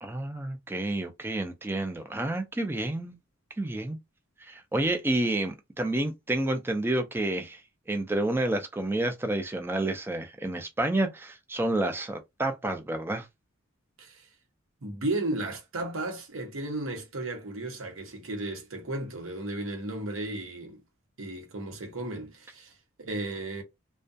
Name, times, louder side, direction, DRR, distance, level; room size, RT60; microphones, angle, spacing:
voice 1, 0.0-3.2 3.6-4.0 4.4-7.6 7.9-13.3, right 1 dB, 10° right, 0.4 m, -29 dB
voice 2, 14.0-14.3 14.8-20.8 21.2-23.6, right 2 dB, 80° right, 0.8 m, -34 dB
2.3 x 2.2 x 2.6 m
head